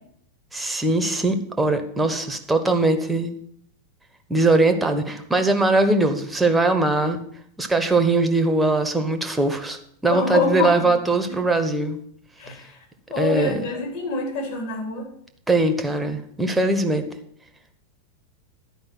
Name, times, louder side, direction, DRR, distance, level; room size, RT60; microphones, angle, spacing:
voice 1, 0.5-3.3 4.3-7.2 7.6-12.0 13.2-13.6 15.5-17.0, right 2 dB, 10° right, 7 dB, 1.2 m, -21 dB
voice 2, 10.1-10.9 11.3-11.4 12.4-12.7 13.1-15.1, left 4 dB, 50° left, 2 dB, 3.5 m, -26 dB
11.0 x 5.2 x 7.7 m, 0.68 s
figure-of-eight pair, 90°, 0 cm